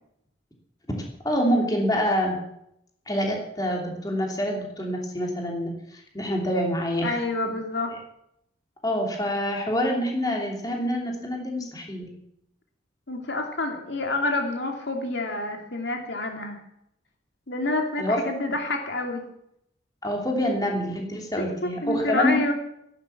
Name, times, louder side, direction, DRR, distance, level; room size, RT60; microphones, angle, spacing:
voice 1, 1.2-2.4 3.1-7.5 8.8-12.1 18.0-18.5 20.0-22.4, equal, 20° left, 0 dB, 3.0 m, -26 dB
voice 2, 7.0-7.9 13.1-16.6 17.5-19.2 21.4-22.5, left 2 dB, 70° left, 3 dB, 2.6 m, -28 dB
15.5 x 11.0 x 7.1 m, 0.77 s
head